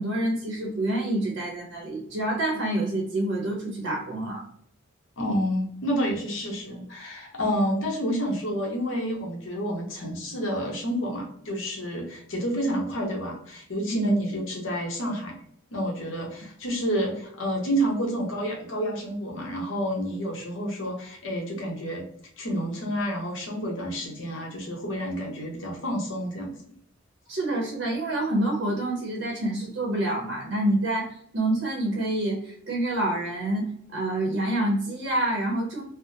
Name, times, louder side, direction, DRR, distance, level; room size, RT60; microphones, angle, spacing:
voice 1, 0.0-4.4 7.4-7.6 13.9-14.1 27.3-35.8, right 1 dB, 65° right, -1 dB, 0.8 m, -27 dB
voice 2, 5.2-15.3 15.7-22.0 22.4-26.5, equal, 65° left, 0 dB, 0.9 m, -29 dB
3.4 x 2.1 x 2.7 m, 0.66 s
head